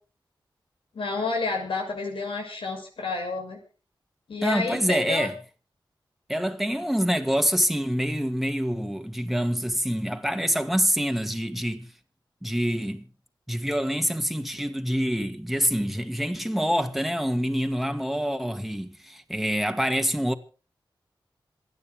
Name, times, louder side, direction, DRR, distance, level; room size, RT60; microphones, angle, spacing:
voice 1, 0.9-3.6 4.3-5.3, left 3 dB, 85° left, 6.6 m, -30 dB
voice 2, 4.4-5.4 6.3-11.9 12.4-13.1 13.5-20.3, equal, ahead, 2.3 m, -26 dB
27.0 x 9.8 x 3.7 m
wide cardioid pair, 65°, 9 cm